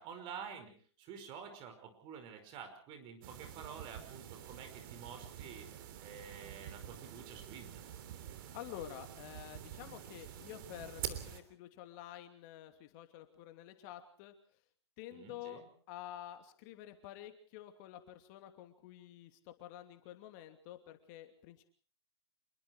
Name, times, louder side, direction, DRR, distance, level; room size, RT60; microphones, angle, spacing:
voice 1, 0.0-5.7 6.0-7.9 15.1-15.7, right 7 dB, 35° right, 8 dB, 5.5 m, -49 dB
sound 1, 3.2-11.4, right 10 dB, 50° right, 3.3 m, -47 dB
voice 2, 8.5-14.3 15.0-15.6 15.9-21.6, left 12 dB, 45° left, 7 dB, 2.8 m, -49 dB
27.0 x 22.0 x 4.7 m, 0.43 s
hypercardioid pair, 120°, 14 cm